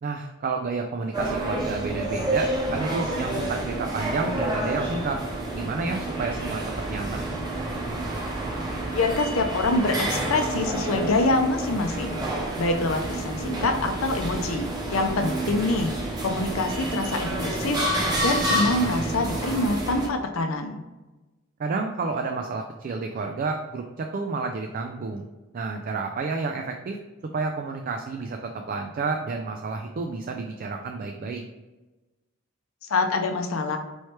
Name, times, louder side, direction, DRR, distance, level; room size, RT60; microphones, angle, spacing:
voice 1, 0.0-5.2 5.6-6.6 6.9-7.2 15.4-15.6 21.6-25.3 25.5-27.0 27.3-31.4, right 4 dB, 45° right, 3 dB, 0.3 m, -30 dB
sound 1, 1.1-20.1, right 1 dB, 20° right, 0.8 m, -29 dB
voice 2, 8.9-12.2 12.6-15.9 16.2-17.8 18.2-20.8 32.9-33.8, left 2 dB, 80° left, 5 dB, 0.5 m, -25 dB
4.3 x 3.1 x 3.2 m, 1.1 s
head